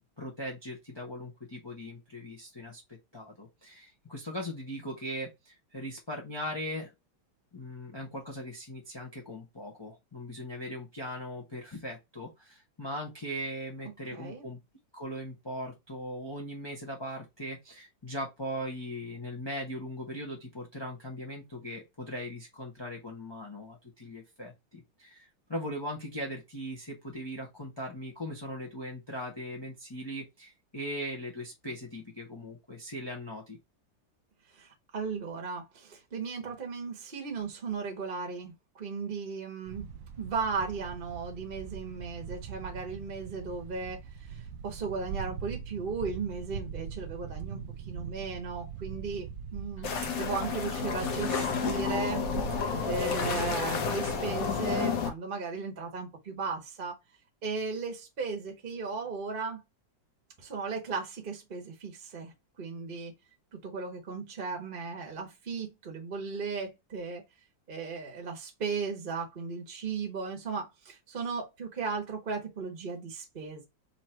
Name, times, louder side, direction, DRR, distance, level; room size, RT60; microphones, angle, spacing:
voice 1, 0.2-6.9 7.5-14.6 14.9-33.6 49.8-49.9, equal, 20° left, 0.8 m, -39 dB
voice 2, 14.1-14.5 34.5-52.2 52.9-56.9 57.4-59.6 60.4-63.1 63.5-67.2 67.7-73.7, right 4 dB, 35° right, 1.1 m, -36 dB
sound 1, 39.7-53.3, right 7 dB, 80° right, 0.7 m, -42 dB
sound 2, 49.8-55.1, left 5 dB, 55° left, 1.2 m, -31 dB
4.1 x 3.0 x 4.4 m
omnidirectional pair, 2.1 m